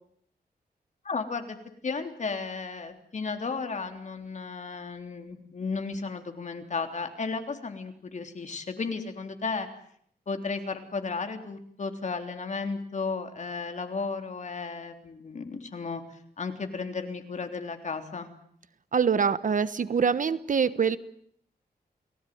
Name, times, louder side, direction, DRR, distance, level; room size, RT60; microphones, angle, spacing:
voice 1, 1.0-1.6 1.8-9.7 10.3-18.3, left 4 dB, 45° left, 6 dB, 3.6 m, -34 dB
voice 2, 18.9-21.0, right 6 dB, 55° right, 15 dB, 1.2 m, -24 dB
29.5 x 19.5 x 9.4 m, 0.66 s
wide cardioid pair, 135°, 16 cm